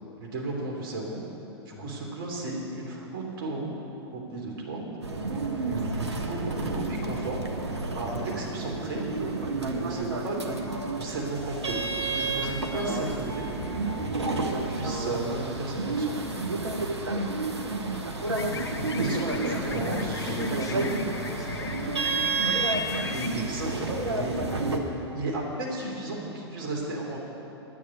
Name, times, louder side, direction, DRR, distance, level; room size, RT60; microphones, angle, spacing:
voice 1, 0.2-1.2 1.7-3.7 4.1-4.8 5.7-7.5 7.9-10.6 11.0-11.8 12.1-13.5 14.1-16.4 19.0-20.4 20.7-20.9 23.1-24.8 25.1-27.2, right 2 dB, 55° right, -2 dB, 3.3 m, -34 dB
sound 1, 5.0-24.8, right 3 dB, 80° right, 1.3 m, -30 dB
voice 2, 5.2-5.5 8.2-8.4 18.5-22.0, left 3 dB, 25° left, 0 dB, 1.5 m, -40 dB
sound 2, 18.3-23.4, left 5 dB, 70° left, 1.2 m, -36 dB
9.7 x 9.7 x 8.7 m, 3.0 s
figure-of-eight pair, 100°, 14 cm